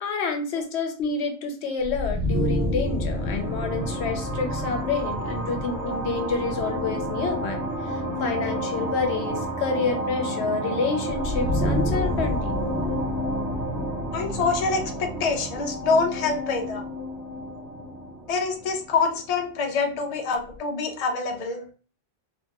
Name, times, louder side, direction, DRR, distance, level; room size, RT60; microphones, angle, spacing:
voice 1, 0.0-12.6, left 4 dB, 75° left, 5 dB, 0.9 m, -28 dB
sound 1, 1.8-19.5, equal, 80° right, 1.1 m, -29 dB
voice 2, 14.1-16.8 18.3-21.6, left 4 dB, 45° left, 3 dB, 0.5 m, -25 dB
2.8 x 2.8 x 2.3 m, 0.38 s
omnidirectional pair, 1.1 m